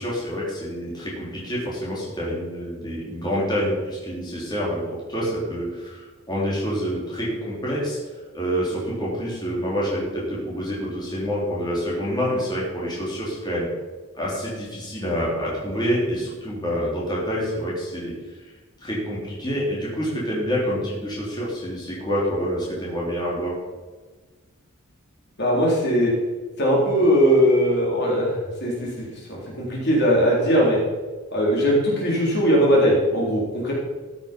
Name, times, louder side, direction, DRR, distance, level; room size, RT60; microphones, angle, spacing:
voice 1, 0.0-4.8 5.1-8.0 8.3-13.7 14.2-18.1 18.8-23.6, equal, 20° left, -6 dB, 3.4 m, -27 dB
voice 2, 25.4-26.1 26.6-30.8 31.3-33.7, equal, 55° left, -3 dB, 3.7 m, -20 dB
14.0 x 7.3 x 5.2 m, 1.3 s
head